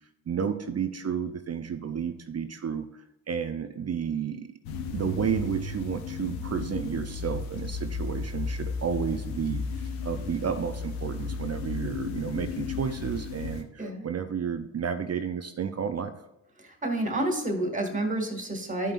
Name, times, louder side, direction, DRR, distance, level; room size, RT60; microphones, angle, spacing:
voice 1, 0.3-4.5 4.9-9.7 10.0-16.1, right 7 dB, 35° right, 8 dB, 0.6 m, -31 dB
sound 1, 4.6-13.6, left 4 dB, 85° left, 0.8 m, -34 dB
voice 2, 16.6-18.9, right 1 dB, 15° right, 3 dB, 2.0 m, -29 dB
11.5 x 5.3 x 2.5 m, 0.88 s
supercardioid pair, 50°, 45 cm